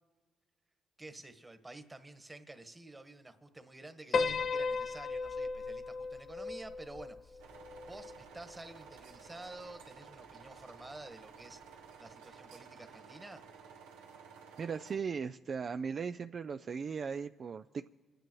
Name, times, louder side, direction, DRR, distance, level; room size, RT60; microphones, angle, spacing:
voice 1, 1.0-7.4 7.9-11.6 12.0-13.4, right 2 dB, 25° right, 9 dB, 1.4 m, -50 dB
Piano, 4.1-8.5, left 4 dB, 60° left, 0.6 m, -36 dB
sound 1, 7.4-15.0, right 6 dB, 90° right, 0.9 m, -54 dB
voice 2, 14.6-17.9, right 6 dB, 55° right, 9 dB, 0.3 m, -38 dB
28.5 x 10.0 x 3.1 m, 1.5 s
supercardioid pair, 50°, 0 cm